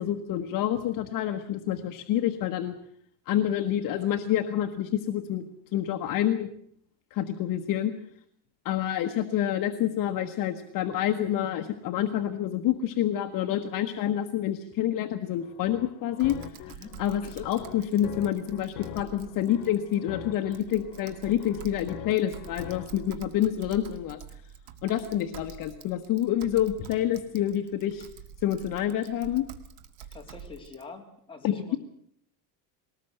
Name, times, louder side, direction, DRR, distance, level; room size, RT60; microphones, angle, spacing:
voice 1, 0.0-2.8 3.3-5.4 5.7-6.5 7.1-7.9 8.6-16.4 17.0-24.2 24.8-28.1 28.4-29.4 31.4-31.8, left 11 dB, 45° left, 5 dB, 1.3 m, -28 dB
sound 1, 15.4-23.1, left 13 dB, 75° left, 1.4 m, -44 dB
Typing, 16.2-30.8, right 8 dB, 60° right, 2.1 m, -47 dB
voice 2, 16.7-17.0 30.1-31.8, left 4 dB, 10° left, 0 dB, 3.1 m, -45 dB
21.0 x 19.0 x 8.0 m, 0.67 s
cardioid pair, 160°, 47 cm